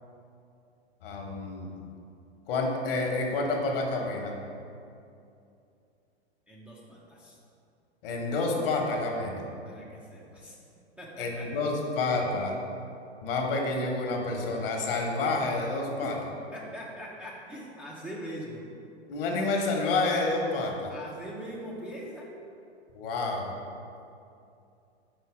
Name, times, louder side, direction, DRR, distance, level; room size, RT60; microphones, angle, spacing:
voice 1, 1.0-1.8 2.5-4.3 8.0-9.4 11.2-12.6 13.2-16.2 19.1-20.9 22.9-23.5, left 3 dB, 55° left, 1 dB, 1.1 m, -29 dB
voice 2, 6.5-7.4 9.6-10.6 11.0-11.5 16.0-18.6 20.9-22.3, equal, 5° right, -6 dB, 0.4 m, -42 dB
4.8 x 4.1 x 4.8 m, 2.6 s
hypercardioid pair, 105°, 33 cm